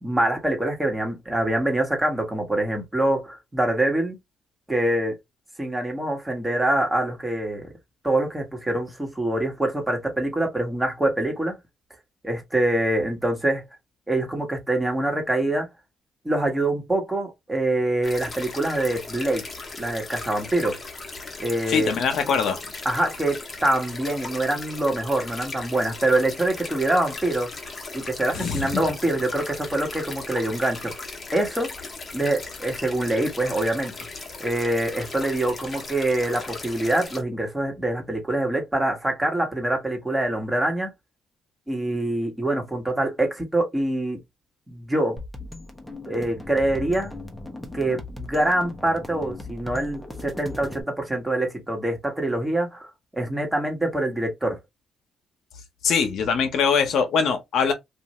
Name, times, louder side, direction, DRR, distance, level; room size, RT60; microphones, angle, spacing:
voice 1, 0.0-4.2 4.7-5.2 5.6-7.7 8.0-11.6 12.2-13.6 14.1-15.7 16.2-19.4 19.8-20.8 21.4-21.9 22.8-27.5 27.9-31.0 31.3-31.7 32.1-33.9 34.4-40.9 41.7-44.2 44.7-45.2 46.0-47.1 47.7-54.6, right 1 dB, 10° right, 1.2 m, -25 dB
sound 1, 18.0-37.2, left 3 dB, 35° left, 0.9 m, -38 dB
voice 2, 21.7-22.6 28.3-28.8 55.8-57.7, left 6 dB, 70° left, 0.8 m, -22 dB
sound 2, 45.2-50.8, left 2 dB, 5° left, 0.8 m, -38 dB
2.6 x 2.4 x 3.0 m
cardioid pair, 90°, 0 cm